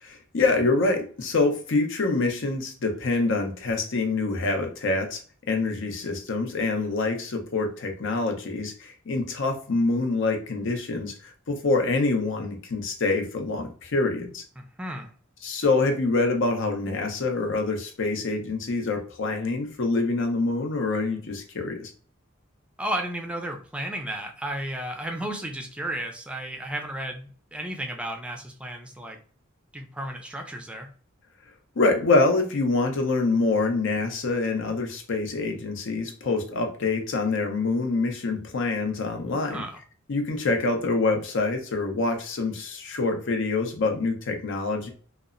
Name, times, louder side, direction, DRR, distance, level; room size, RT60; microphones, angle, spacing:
voice 1, 0.0-5.2 5.5-14.4 15.4-21.9 31.8-39.6 40.1-44.9, left 3 dB, 65° left, 4 dB, 0.6 m, -26 dB
voice 2, 14.6-15.1 22.8-29.2 29.7-30.9 39.4-39.8, right 1 dB, 5° right, 3 dB, 0.4 m, -33 dB
2.8 x 2.0 x 2.4 m, 0.43 s
head